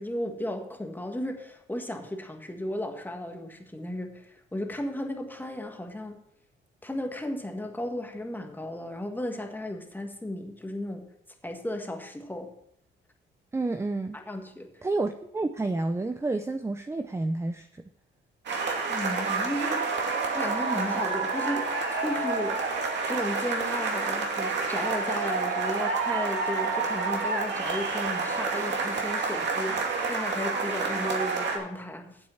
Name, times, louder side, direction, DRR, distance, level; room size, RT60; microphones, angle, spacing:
voice 1, 0.0-6.2 6.8-11.1 11.4-12.5 14.1-14.7 18.9-21.7 22.0-22.6 23.1-32.2, left 1 dB, 10° left, 4 dB, 1.7 m, -34 dB
voice 2, 13.5-14.2 14.8-17.8, right 2 dB, 15° right, 9 dB, 0.6 m, -29 dB
sound 1, 18.5-31.6, right 4 dB, 60° right, 2.4 m, -29 dB
8.9 x 7.7 x 5.6 m, 0.74 s
cardioid pair, 90°, 20 cm